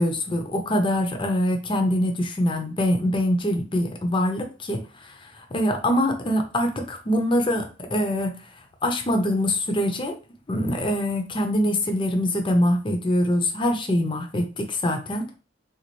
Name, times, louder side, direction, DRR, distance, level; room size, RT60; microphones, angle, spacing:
voice 1, 0.0-8.4 8.8-10.2 10.5-15.3, left 1 dB, 25° left, 5 dB, 0.6 m, -24 dB
3.9 x 2.5 x 3.0 m, 0.33 s
head